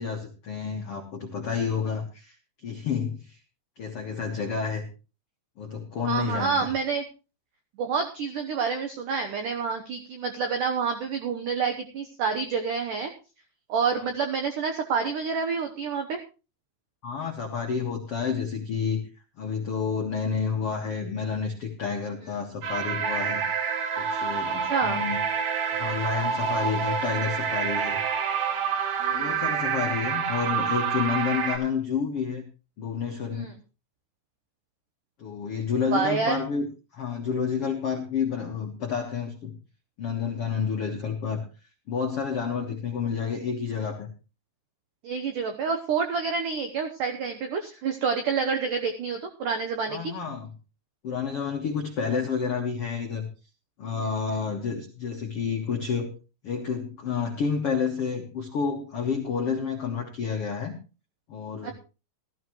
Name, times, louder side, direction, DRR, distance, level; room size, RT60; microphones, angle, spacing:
voice 1, 0.0-2.3 2.6-3.4 3.8-4.8 5.6-6.5 13.9-14.0 17.0-19.0 19.4-23.4 24.0-25.2 25.7-28.0 29.1-32.4 32.8-33.5 35.2-36.7 36.9-39.6 40.0-41.4 41.9-44.1 49.9-50.5 51.0-53.3 53.8-56.1 56.4-60.7 61.3-61.7, left 6 dB, 80° left, 1 dB, 1.3 m, -29 dB
voice 2, 6.0-7.1 7.8-13.1 13.7-16.2 24.6-25.0 29.0-29.4 33.3-33.5 35.9-36.4 45.0-50.1 54.0-54.1 61.6-61.7, right 5 dB, 85° right, 5 dB, 1.8 m, -28 dB
sound 1, 22.6-31.6, right 7 dB, 60° right, 4.0 m, -28 dB
14.5 x 14.0 x 3.1 m, 0.32 s
omnidirectional pair, 5.3 m